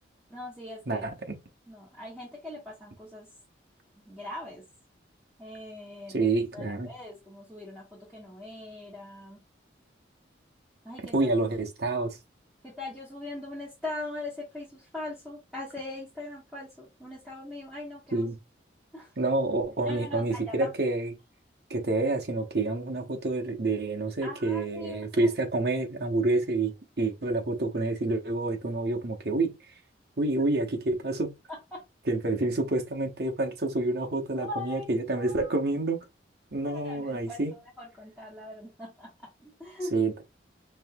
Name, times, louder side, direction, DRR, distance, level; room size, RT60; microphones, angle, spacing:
voice 1, 0.3-1.1 1.7-3.3 4.0-4.6 5.4-9.4 10.8-11.3 12.6-18.3 18.9-19.1 19.8-20.7 24.2-25.3 31.5-31.8 34.4-35.5 36.7-39.1 39.4-39.9, left 2 dB, 5° right, 1.5 m, -41 dB
voice 2, 0.9-1.4 6.1-6.9 11.1-12.2 18.1-18.3 19.2-21.1 21.7-29.5 30.2-31.3 32.1-36.0 36.5-37.5 39.9-40.2, right 2 dB, 55° right, 0.9 m, -28 dB
5.4 x 2.7 x 2.2 m
head